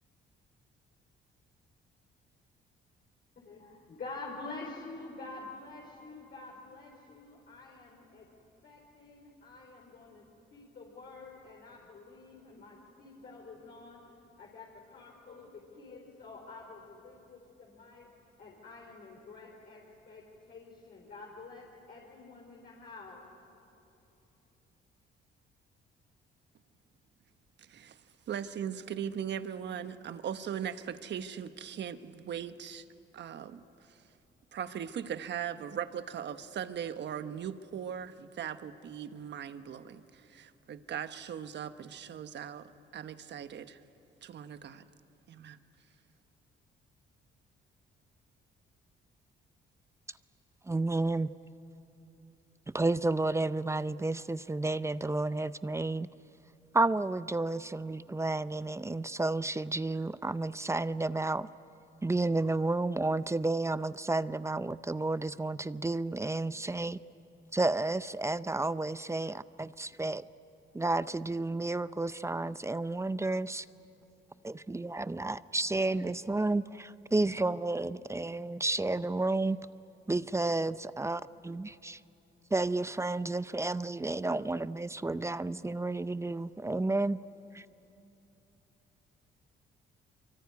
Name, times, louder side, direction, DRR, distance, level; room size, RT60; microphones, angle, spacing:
voice 1, 3.4-8.3 8.6-10.2 10.5-18.1 18.4-23.2, left 3 dB, 50° left, -3 dB, 4.7 m, -48 dB
voice 2, 27.6-28.0 28.3-32.8 33.1-34.0 34.5-43.8 44.2-44.9 45.3-45.6, right 8 dB, 65° right, 10 dB, 1.2 m, -39 dB
voice 3, 50.7-51.3 52.7-56.1 56.7-61.5 62.0-67.0 67.5-70.2 70.7-73.7 74.4-79.6 80.1-82.0 82.5-87.2 87.5-87.6, right 2 dB, 15° right, 15 dB, 0.6 m, -31 dB
24.5 x 24.0 x 9.6 m, 2.9 s
cardioid pair, 90°, 20 cm